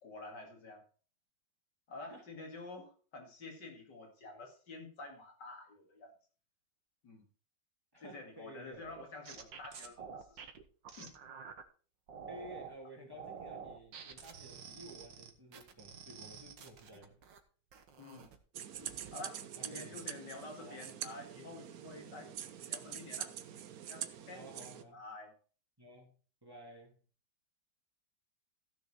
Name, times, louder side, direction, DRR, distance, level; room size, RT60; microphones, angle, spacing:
voice 1, 0.0-0.8 1.9-6.1 7.0-7.2 8.0-10.5 11.0-11.1 18.0-18.3 19.1-22.3 22.7-23.3 23.9-24.4 24.9-25.3, left 2 dB, 70° left, 2.9 m, -49 dB
voice 2, 7.9-8.8 12.3-17.2 19.4-20.0 20.6-20.8 24.3-25.0 25.8-26.1 26.4-27.0, right 1 dB, 10° right, 3.2 m, -53 dB
sound 1, 8.7-11.6 12.1-12.7 13.1-17.4 17.7-18.4 18.7-19.1, right 6 dB, 90° right, 2.0 m, -49 dB
sound 2, 18.5-24.8, right 9 dB, 60° right, 1.2 m, -45 dB
15.0 x 6.7 x 4.3 m
omnidirectional pair, 1.9 m